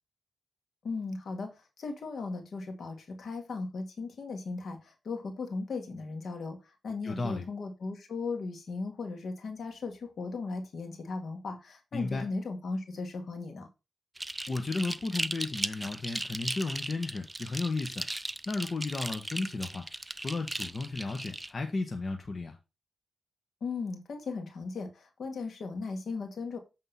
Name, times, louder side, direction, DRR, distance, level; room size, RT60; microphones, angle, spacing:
voice 1, 0.8-1.5 1.8-6.6 6.8-13.7 23.6-26.6, left 4 dB, 70° left, 1.9 m, -37 dB
voice 2, 7.0-7.4 11.9-12.3 14.5-18.1 18.5-19.8 20.2-22.6, left 3 dB, 45° left, 1.1 m, -34 dB
sound 1, 14.2-21.5, right 1 dB, 15° right, 0.5 m, -37 dB
8.2 x 3.7 x 5.5 m
cardioid pair, 60°, 0 cm